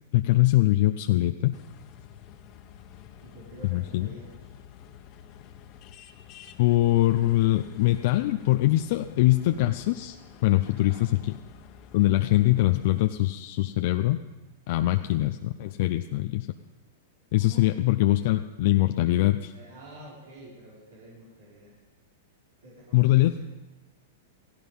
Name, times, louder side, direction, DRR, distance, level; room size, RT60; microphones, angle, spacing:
voice 1, 0.1-1.6 3.7-4.1 6.6-11.3 11.9-14.2 14.7-16.5 17.3-19.5 22.9-23.4, left 16 dB, 60° left, 7 dB, 0.6 m, -23 dB
sound 1, 1.5-13.1, left 9 dB, 45° left, 1.4 m, -49 dB
voice 2, 3.2-4.5 10.6-11.1 14.8-15.2 17.4-17.9 19.5-21.8 22.6-23.4, right 1 dB, 85° right, -7 dB, 5.3 m, -49 dB
16.5 x 15.5 x 5.4 m, 1.2 s
hypercardioid pair, 120°, 0 cm